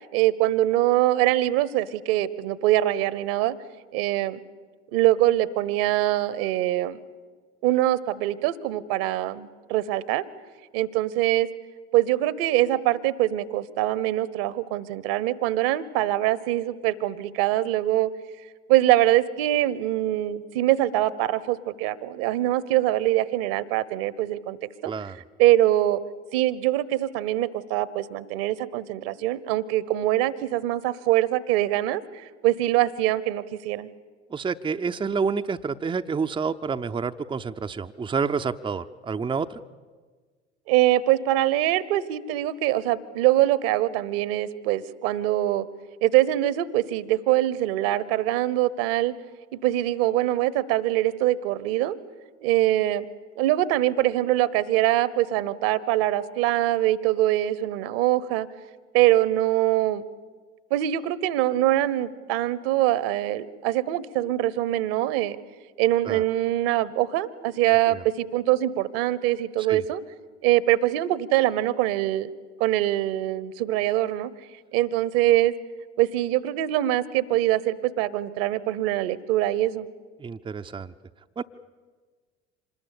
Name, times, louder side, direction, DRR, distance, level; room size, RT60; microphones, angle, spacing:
voice 1, 0.1-3.5 3.9-4.4 4.9-7.0 7.6-10.2 10.7-11.5 11.9-18.1 18.7-24.6 24.8-24.9 25.4-26.0 26.3-32.0 32.4-33.9 40.7-45.7 46.0-49.1 49.6-52.0 52.4-53.0 53.4-58.5 58.9-60.0 60.7-65.4 65.8-70.0 70.4-72.3 72.6-74.3 74.7-75.5 76.0-79.9, right 14 dB, 55° right, 20 dB, 1.2 m, -23 dB
voice 2, 24.8-25.2 34.3-39.6 66.1-66.2 67.9-68.0 69.7-69.8 80.2-80.9 81.4-81.5, right 5 dB, 15° right, 7 dB, 0.7 m, -29 dB
26.5 x 20.5 x 8.5 m, 1.4 s
figure-of-eight pair, 60°, 34 cm